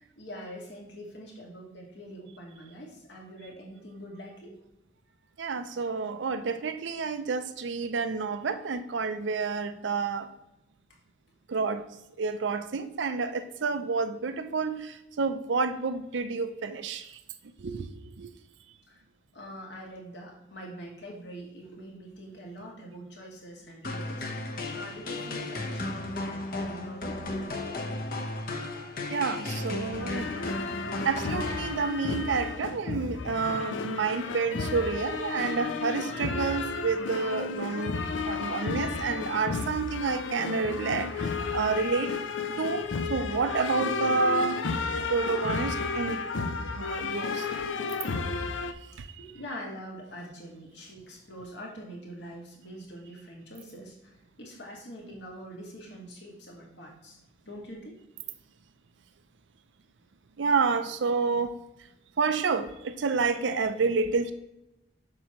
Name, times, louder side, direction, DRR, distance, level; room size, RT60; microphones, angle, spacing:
voice 1, 0.2-4.5 18.9-19.0 19.3-27.2 28.7-28.9 49.2-54.1 54.4-57.2 57.4-58.0, equal, 65° left, -2 dB, 2.1 m, -44 dB
voice 2, 5.4-10.3 11.5-11.8 12.2-17.1 17.6-17.9 18.2-18.3 29.1-30.3 31.0-42.1 42.6-44.6 45.1-46.2 46.8-47.5 49.0-49.1 60.4-61.5 62.2-64.3, right 4 dB, 75° right, 10 dB, 0.5 m, -29 dB
sound 1, 23.8-32.2, left 2 dB, 45° left, 0.9 m, -35 dB
sound 2, 29.9-48.7, left 4 dB, 80° left, 0.6 m, -32 dB
7.5 x 6.1 x 3.0 m, 0.89 s
head